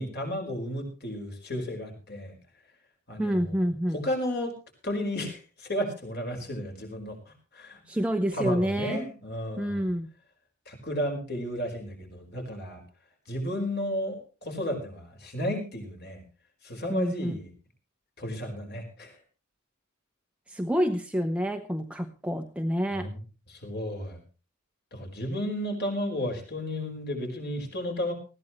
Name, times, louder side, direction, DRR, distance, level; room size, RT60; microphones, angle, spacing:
voice 1, 0.0-2.3 3.1-3.6 3.9-4.5 4.8-7.2 7.5-7.8 8.3-9.9 10.7-12.8 13.3-16.2 16.6-17.5 18.2-19.2 22.9-23.1 23.5-24.2 24.9-28.1, equal, 45° left, 3 dB, 5.0 m, -33 dB
voice 2, 3.2-4.0 7.9-9.0 9.6-10.1 16.9-17.4 20.5-23.1, equal, 5° right, 5 dB, 0.8 m, -28 dB
20.0 x 15.5 x 3.1 m, 0.34 s
head